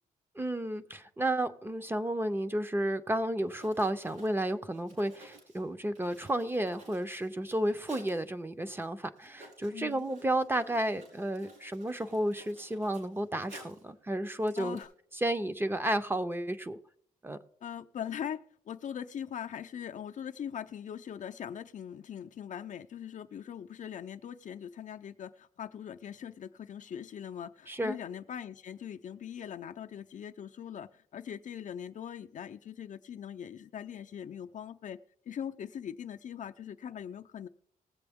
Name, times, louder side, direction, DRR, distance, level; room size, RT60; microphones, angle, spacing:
voice 1, 0.4-14.8 15.1-16.8 17.2-17.4 27.7-28.0, right 1 dB, 15° right, 9 dB, 0.6 m, -32 dB
Writing, 3.5-8.2 8.8-8.9 9.2-13.9 14.3-14.8, right 1 dB, 65° right, 4.3 m, -54 dB
voice 2, 9.7-10.1 14.6-14.9 17.6-18.4 18.7-35.0 35.3-37.5, left 9 dB, 60° left, 8 dB, 0.5 m, -41 dB
19.5 x 7.7 x 3.5 m, 0.66 s
cardioid pair, 110°, 15 cm